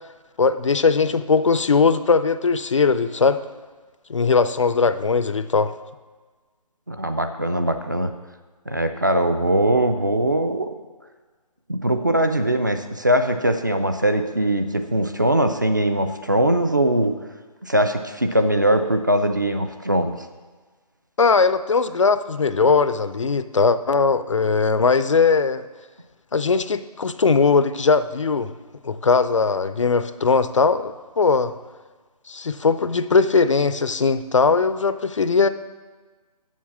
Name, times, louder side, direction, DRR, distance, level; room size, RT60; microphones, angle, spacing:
voice 1, 0.4-3.4 4.1-5.7 21.2-25.6 26.3-28.5 28.8-31.5 32.3-35.5, left 4 dB, 50° left, 12 dB, 0.4 m, -19 dB
voice 2, 6.9-8.1 8.7-10.7 11.7-17.1 17.6-20.2, right 1 dB, 30° right, 8 dB, 0.4 m, -21 dB
7.2 x 6.4 x 7.2 m, 1.4 s
figure-of-eight pair, 170°, 20 cm